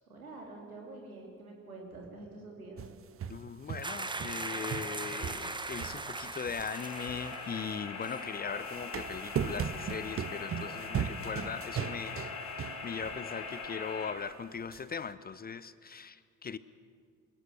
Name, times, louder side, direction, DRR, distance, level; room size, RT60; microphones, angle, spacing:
voice 1, 0.1-2.9, right 2 dB, 85° right, 0 dB, 3.2 m, -47 dB
sound 1, 2.8-4.4 4.7-7.8 8.5-13.2 13.6-13.7 14.7-14.8, right 8 dB, 30° right, 0.9 m, -38 dB
voice 2, 3.3-12.2 12.5-16.6, left 6 dB, 20° left, 16 dB, 0.7 m, -39 dB
sound 2, 3.8-7.8 8.0-8.2, right 3 dB, 10° right, 1.1 m, -39 dB
sound 3, 6.7-14.1, left 5 dB, 70° left, 4.6 m, -41 dB
22.5 x 17.5 x 6.9 m, 2.1 s
figure-of-eight pair, 55°, 42 cm